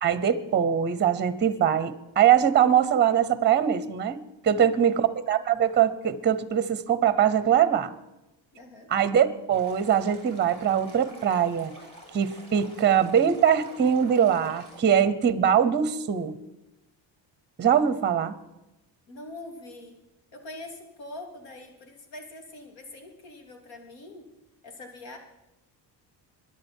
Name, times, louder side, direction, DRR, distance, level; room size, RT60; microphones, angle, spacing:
voice 1, 0.0-7.9 8.9-11.8 12.1-16.4 17.6-18.3, right 9 dB, 25° right, 15 dB, 0.8 m, -22 dB
voice 2, 4.5-5.0 8.5-8.9 19.1-20.0 20.3-24.3 24.6-25.2, left 2 dB, 80° left, 4 dB, 3.2 m, -43 dB
Stream, 9.5-14.8, right 1 dB, 15° left, 4.3 m, -48 dB
22.0 x 11.0 x 4.5 m, 0.96 s
cardioid pair, 150°, 44 cm